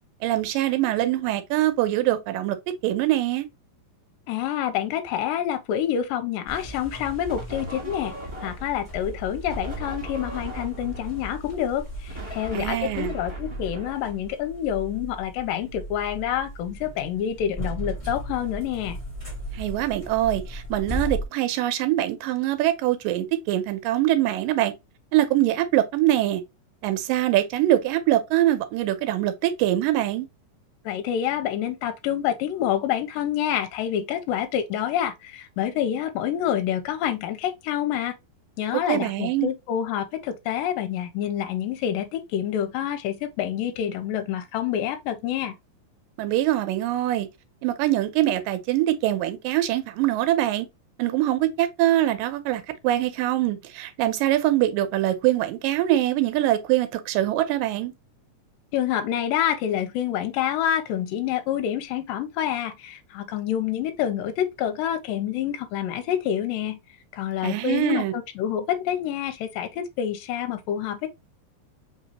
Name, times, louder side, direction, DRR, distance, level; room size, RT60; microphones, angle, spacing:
voice 1, 0.2-2.6 2.8-3.5 12.5-13.1 19.5-24.7 25.1-26.4 26.8-30.3 38.9-39.5 46.2-47.3 47.6-50.7 51.0-57.9 67.4-68.1, right 14 dB, 80° right, 2.3 m, -23 dB
voice 2, 4.3-8.1 8.4-19.0 30.9-38.2 38.6-45.5 58.7-66.8 67.1-71.1, left 10 dB, 85° left, 2.3 m, -27 dB
sound 1, 6.5-21.3, equal, 45° left, 0.4 m, -37 dB
sound 2, 7.3-8.9 9.5-14.6, right 1 dB, 15° right, 1.2 m, -39 dB
5.1 x 3.0 x 2.9 m
omnidirectional pair, 4.1 m